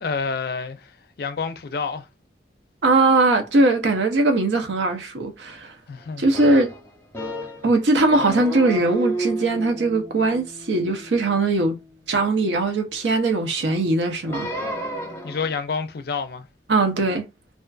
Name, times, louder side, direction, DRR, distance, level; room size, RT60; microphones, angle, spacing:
voice 1, 0.0-2.1 5.9-6.3 15.2-16.5, left 5 dB, 55° left, 0.4 m, -28 dB
voice 2, 2.8-5.7 6.2-6.7 7.6-11.8 12.1-14.5 16.7-17.3, right 2 dB, 80° right, 0.6 m, -20 dB
sound 1, 6.3-7.7 8.1-12.4 14.2-15.6, right 1 dB, 15° left, 0.6 m, -32 dB
2.4 x 2.4 x 2.3 m
head